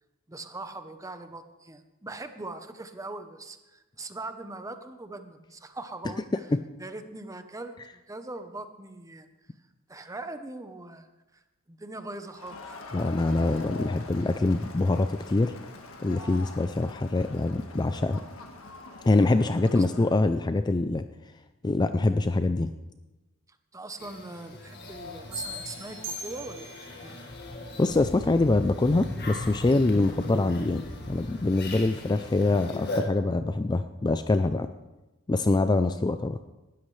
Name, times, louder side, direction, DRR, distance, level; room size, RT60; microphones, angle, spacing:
voice 1, 0.3-6.5 6.8-9.3 9.9-11.1 11.3-11.4 11.7-12.7 19.7-19.9 23.7-27.2, right 2 dB, 15° right, 8 dB, 0.8 m, -41 dB
Crowd, 12.3-20.3, left 3 dB, 70° left, 1.6 m, -44 dB
voice 2, 12.9-15.5 16.0-18.2 19.1-21.0 21.6-22.7 27.8-34.7 35.3-36.4, left 2 dB, 20° left, 10 dB, 0.4 m, -24 dB
sound 1, 24.0-33.0, left 1 dB, 50° left, 1.8 m, -39 dB
sound 2, 25.3-27.0, right 1 dB, 60° right, 4.2 m, -38 dB
19.0 x 13.0 x 3.3 m, 1.1 s
head